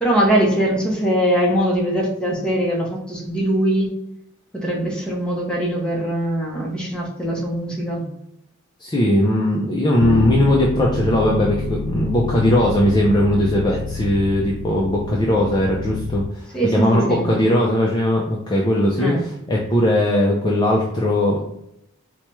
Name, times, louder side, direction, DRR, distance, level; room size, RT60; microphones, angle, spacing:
voice 1, 0.0-3.9 4.5-8.0 16.5-17.4 19.0-19.2, right 1 dB, 5° left, -3 dB, 0.8 m, -21 dB
voice 2, 8.8-16.4 16.7-21.4, left 1 dB, 20° left, -3 dB, 0.4 m, -19 dB
Bass guitar, 10.0-16.3, left 4 dB, 85° left, 0.3 m, -28 dB
4.4 x 2.2 x 3.0 m, 0.80 s
head